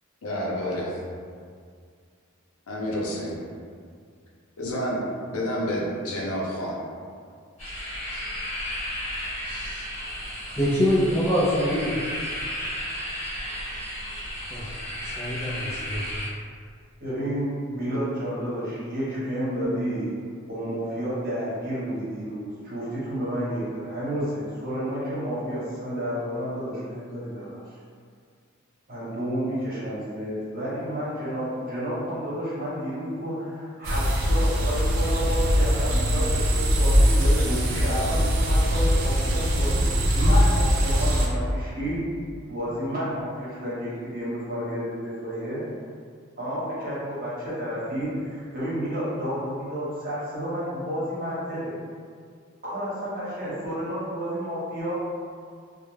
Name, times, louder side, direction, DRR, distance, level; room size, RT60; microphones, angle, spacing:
voice 1, 0.2-1.0 2.7-3.4 4.6-5.0 5.3-6.7 9.4-9.9, equal, 85° left, -3 dB, 0.6 m, -29 dB
sound 1, 7.6-16.3, equal, 35° left, 1.1 m, -33 dB
voice 2, 10.6-12.0 14.4-14.7 15.0-16.1, equal, 10° left, -7 dB, 0.4 m, -24 dB
voice 3, 17.0-20.2 20.5-27.6 28.9-42.1 42.5-45.6 46.4-51.7 52.6-54.9, equal, 45° right, -10 dB, 1.0 m, -30 dB
sound 2, 33.8-41.3, equal, 75° right, 0.4 m, -21 dB
2.3 x 2.1 x 3.1 m, 2.1 s
head